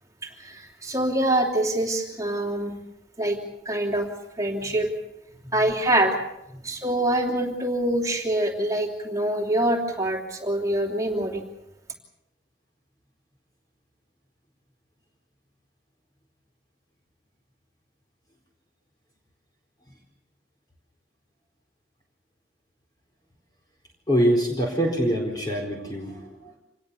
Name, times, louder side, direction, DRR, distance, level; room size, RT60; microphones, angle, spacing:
voice 1, 0.2-2.8 3.2-3.4 3.6-4.1 4.4-4.9 5.5-6.1 6.6-11.4, right 1 dB, 20° right, 2 dB, 3.0 m, -25 dB
voice 2, 24.1-26.6, equal, 20° left, 0 dB, 4.4 m, -25 dB
27.0 x 20.0 x 7.0 m, 0.86 s
head